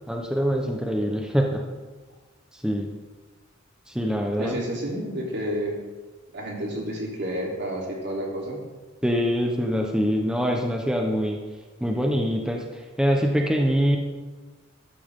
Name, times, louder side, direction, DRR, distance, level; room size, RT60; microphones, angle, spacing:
voice 1, 0.1-1.6 2.5-2.9 3.9-4.6 9.0-11.4 11.8-14.0, equal, 5° right, 1 dB, 1.0 m, -24 dB
voice 2, 4.4-5.7 6.3-8.6, equal, 60° right, -2 dB, 3.4 m, -30 dB
13.0 x 13.0 x 3.7 m, 1.3 s
head